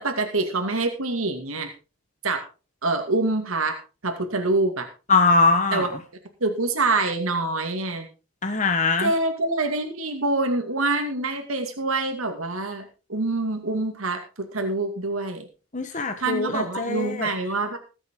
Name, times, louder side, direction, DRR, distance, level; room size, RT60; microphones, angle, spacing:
voice 1, 0.0-1.7 2.2-2.4 2.8-4.9 5.7-5.9 6.4-8.1 9.0-12.8 13.1-15.5 16.2-17.8, right 2 dB, 85° right, 5 dB, 2.4 m, -25 dB
voice 2, 5.1-5.9 8.4-9.1 15.7-17.3, left 3 dB, 35° left, 6 dB, 1.2 m, -22 dB
21.0 x 8.0 x 3.8 m, 0.33 s
head